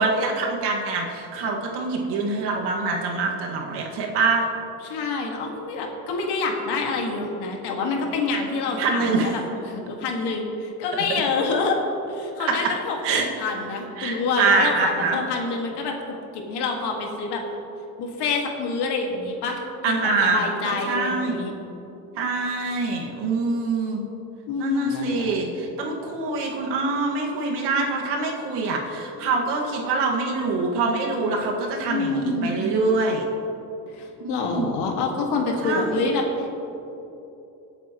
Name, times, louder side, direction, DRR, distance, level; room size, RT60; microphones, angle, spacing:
voice 1, 0.0-4.5 8.8-9.4 12.5-12.7 13.0-13.3 14.0-15.2 19.8-21.4 22.1-24.0 24.6-33.2 34.2-34.7 35.6-36.0, right 3 dB, 80° right, 0 dB, 2.0 m, -25 dB
voice 2, 4.8-9.4 9.7-11.8 12.1-15.9 16.3-17.4 18.0-21.5 24.5-25.3 31.9-32.8 33.9-36.5, left 3 dB, 70° left, 1 dB, 2.0 m, -27 dB
20.0 x 8.0 x 3.1 m, 3.0 s
cardioid pair, 105°, 41 cm